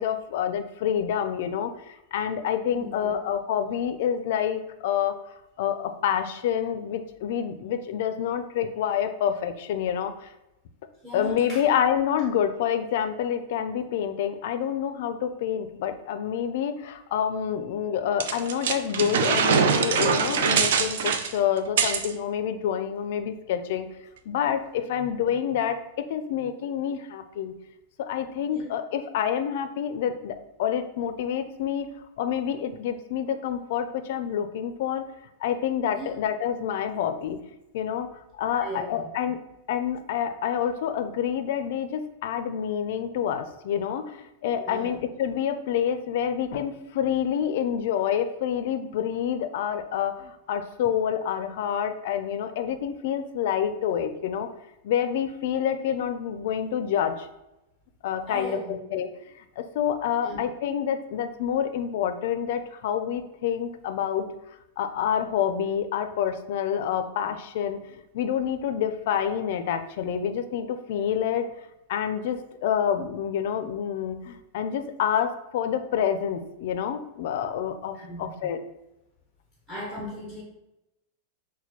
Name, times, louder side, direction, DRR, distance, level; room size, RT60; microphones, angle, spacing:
voice 1, 0.0-10.3 11.1-23.9 24.3-27.5 28.0-31.9 32.2-35.0 35.4-37.4 37.7-38.1 38.4-39.4 39.7-54.5 54.8-57.3 58.0-59.1 59.4-64.3 64.8-71.5 71.9-78.6, left 9 dB, 55° left, 9 dB, 0.4 m, -28 dB
voice 2, 2.7-3.1 11.0-11.6 28.5-28.7 35.9-36.1 38.5-39.0 44.6-45.0 58.3-58.8 60.2-60.4 77.9-78.3 79.7-80.4, equal, 10° right, -3 dB, 0.6 m, -38 dB
sound 1, 18.2-22.1, right 6 dB, 70° right, 0.4 m, -23 dB
6.1 x 2.2 x 2.8 m, 0.92 s
supercardioid pair, 170°, 0 cm